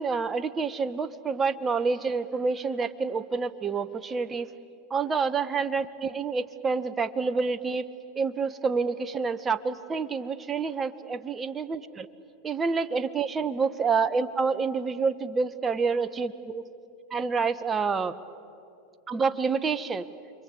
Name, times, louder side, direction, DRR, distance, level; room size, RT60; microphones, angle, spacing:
voice 1, 0.0-4.5 4.9-7.9 8.2-12.1 12.4-16.6 17.1-18.2 19.1-20.1, right 5 dB, 25° right, 11 dB, 1.2 m, -28 dB
29.0 x 23.5 x 8.6 m, 2.6 s
hypercardioid pair, 90°, 0 cm